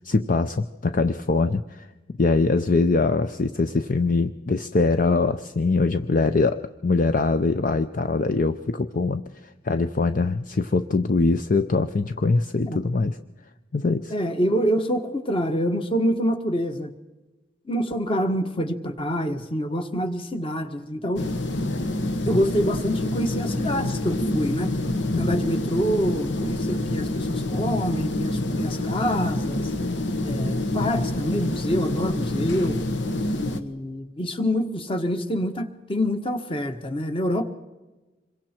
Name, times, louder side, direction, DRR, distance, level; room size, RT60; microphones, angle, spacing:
voice 1, 0.0-1.9 2.2-9.2 9.6-13.2 13.7-14.1 25.1-25.3, left 3 dB, 50° left, 10 dB, 0.6 m, -22 dB
voice 2, 14.1-16.9 17.7-21.2 22.2-24.7 25.2-29.7 30.2-32.8 33.3-37.4, equal, 30° left, 7 dB, 1.4 m, -26 dB
sound 1, 21.2-33.6, left 1 dB, 80° left, 1.4 m, -27 dB
26.5 x 22.5 x 4.5 m, 1.2 s
head